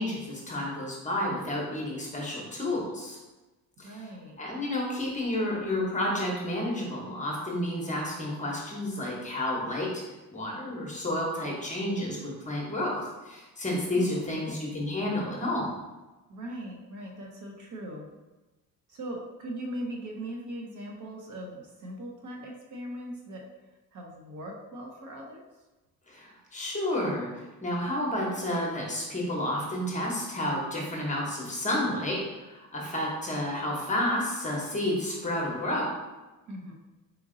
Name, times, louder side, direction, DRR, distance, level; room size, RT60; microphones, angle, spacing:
voice 1, 0.0-3.2 3.8-4.0 4.4-9.9 10.3-15.7 26.1-35.9, left 1 dB, 20° left, -2 dB, 0.9 m, -31 dB
voice 2, 3.8-4.4 13.9-14.1 14.3-14.5 16.3-18.1 18.9-23.4 23.9-25.4 36.5-36.7, right 1 dB, 55° right, 0 dB, 0.8 m, -39 dB
4.3 x 2.7 x 3.7 m, 1.1 s
cardioid pair, 150°, 36 cm